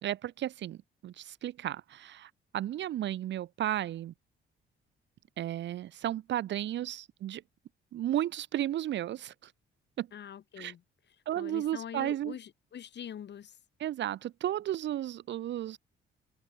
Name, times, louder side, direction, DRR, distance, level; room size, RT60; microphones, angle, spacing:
voice 1, 0.0-4.1 5.4-7.4 7.9-9.5 10.0-10.1 10.6-10.7 11.3-12.4 13.8-15.8, right 12 dB, 65° right, 0.7 m, -34 dB
voice 2, 10.1-10.8 11.4-13.6, left 9 dB, 60° left, 6.2 m, -43 dB
cardioid pair, 90°, 20 cm